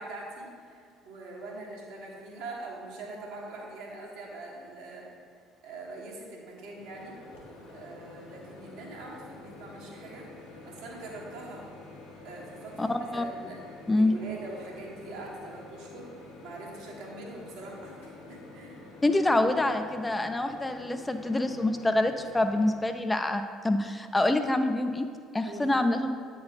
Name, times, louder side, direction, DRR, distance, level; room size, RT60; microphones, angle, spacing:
voice 1, 0.0-5.1 5.6-7.2 7.7-11.7 12.2-13.6 13.9-18.7 25.4-25.7, right 2 dB, 70° right, -3 dB, 1.3 m, -43 dB
Microwave oven, 6.6-22.9, left 2 dB, 75° left, 1.3 m, -48 dB
voice 2, 12.8-13.2 13.9-14.1 19.0-25.1 25.3-26.1, left 2 dB, 15° left, 7 dB, 0.4 m, -26 dB
8.5 x 3.8 x 4.1 m, 2.1 s
figure-of-eight pair, 55°, 0 cm